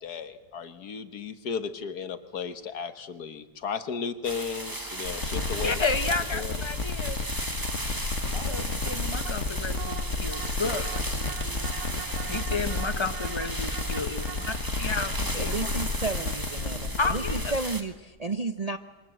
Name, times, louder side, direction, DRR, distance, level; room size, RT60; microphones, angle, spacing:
voice 1, 0.0-5.8 6.3-6.5, left 6 dB, 75° left, 11 dB, 1.9 m, -35 dB
sound 1, 4.2-17.8, right 1 dB, 15° right, 1.5 m, -36 dB
sound 2, 5.1-17.6, left 4 dB, 50° left, 1.7 m, -32 dB
voice 2, 5.6-7.2 8.3-10.9 12.3-15.5 17.0-17.5, left 4 dB, 20° left, 9 dB, 1.4 m, -32 dB
sound 3, 8.5-17.5, right 10 dB, 90° right, 1.7 m, -44 dB
voice 3, 15.3-18.8, right 3 dB, 35° right, 8 dB, 0.7 m, -32 dB
27.5 x 23.0 x 7.7 m, 1.1 s
omnidirectional pair, 1.7 m